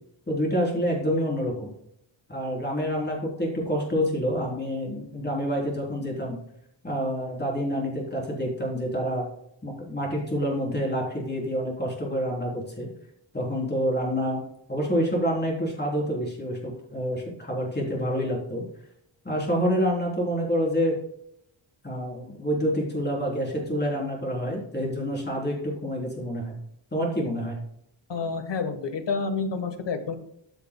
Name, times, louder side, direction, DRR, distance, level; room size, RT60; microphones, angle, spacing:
voice 1, 0.3-1.7 2.3-6.4 6.8-9.3 9.6-12.9 13.3-14.4 14.7-18.6 19.3-21.0 21.8-26.6 26.9-27.6, equal, 20° left, -2 dB, 3.5 m, -27 dB
voice 2, 28.1-30.2, left 4 dB, 65° left, 7 dB, 1.3 m, -29 dB
13.5 x 6.7 x 2.2 m, 0.74 s
wide cardioid pair, 140°, 47 cm